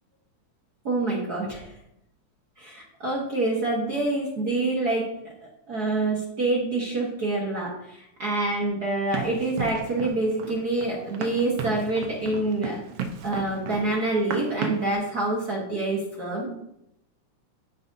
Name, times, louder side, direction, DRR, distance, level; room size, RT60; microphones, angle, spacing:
voice 1, 0.8-1.7 2.6-12.8 13.2-16.5, right 2 dB, 50° right, -4 dB, 1.2 m, -27 dB
Run, 9.1-14.9, right 5 dB, 80° right, 1.3 m, -34 dB
14.0 x 5.2 x 2.7 m, 0.79 s
omnidirectional pair, 3.7 m